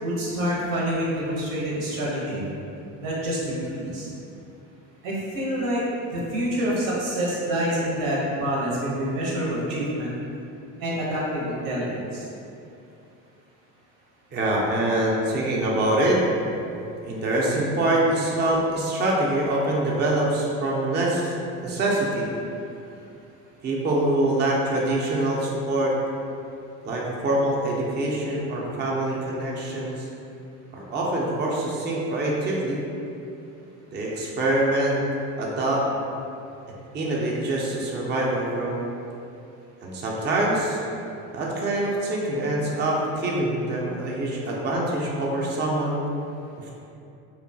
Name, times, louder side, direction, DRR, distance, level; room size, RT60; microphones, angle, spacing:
voice 1, 0.0-2.5 3.0-4.1 5.0-5.8 6.1-10.1 10.8-12.3, equal, 85° right, -6 dB, 0.9 m, -27 dB
voice 2, 14.3-16.2 17.0-21.3 21.6-22.3 23.6-25.9 26.8-30.1 30.7-32.8 33.9-35.0 35.4-35.8 36.9-38.8 39.8-40.8 41.3-46.1 46.6-46.7, right 1 dB, 30° right, -3 dB, 0.5 m, -24 dB
2.8 x 2.2 x 2.6 m, 2.7 s
supercardioid pair, 80°, 39 cm